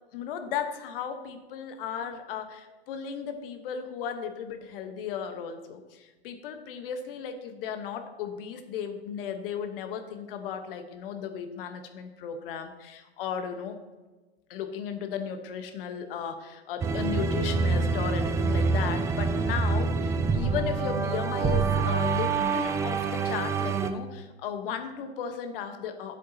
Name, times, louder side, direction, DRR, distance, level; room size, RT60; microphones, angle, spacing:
voice 1, 0.1-13.8 14.5-26.2, left 7 dB, 55° left, 7 dB, 1.2 m, -35 dB
sound 1, 16.8-23.9, right 4 dB, 10° right, 0.3 m, -26 dB
12.5 x 7.4 x 2.8 m, 1.2 s
hypercardioid pair, 105°, 32 cm